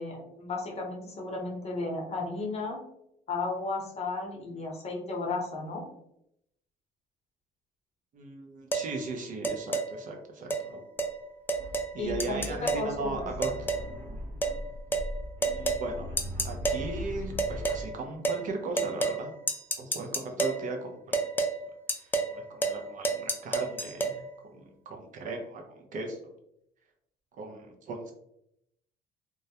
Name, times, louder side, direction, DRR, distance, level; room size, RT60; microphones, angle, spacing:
voice 1, 0.0-2.8 3.3-5.9 12.0-13.3, left 3 dB, 40° left, 0 dB, 0.7 m, -34 dB
voice 2, 8.1-10.8 11.9-13.7 15.4-16.1 16.4-19.3 19.8-21.2 21.9-22.0 22.3-24.2 24.5-26.3 27.4-28.1, right 3 dB, 50° right, 2 dB, 0.5 m, -37 dB
sound 1, 8.7-8.9 9.4-9.9 10.5-10.6 11.0-11.1 11.5-11.9 12.2-12.9 13.4-13.9 14.4-14.6 14.9-15.1 15.4-15.8 16.2-16.8 17.4-17.8 18.2-18.4 18.8-19.2 19.5-20.6 21.1-21.5 21.9-22.3 22.6-22.8 23.0-24.1, right 2 dB, 10° left, 0.3 m, -29 dB
sound 2, 11.0-11.1 11.5-17.8, left 1 dB, 80° right, 0.8 m, -39 dB
2.2 x 2.0 x 2.7 m, 0.77 s
cardioid pair, 110°, 17 cm